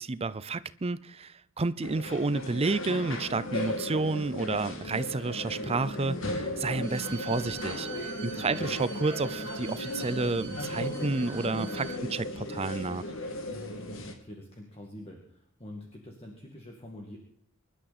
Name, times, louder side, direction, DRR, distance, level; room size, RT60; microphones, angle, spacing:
voice 1, 0.0-13.0, right 3 dB, 30° right, 0.5 m, -31 dB
sound 1, 1.8-14.1, left 1 dB, 65° left, 2.2 m, -36 dB
Bowed string instrument, 6.8-12.0, right 11 dB, 60° right, 1.4 m, -45 dB
voice 2, 8.4-8.7 13.9-17.2, left 1 dB, 30° left, 2.0 m, -45 dB
25.0 x 11.5 x 4.2 m
head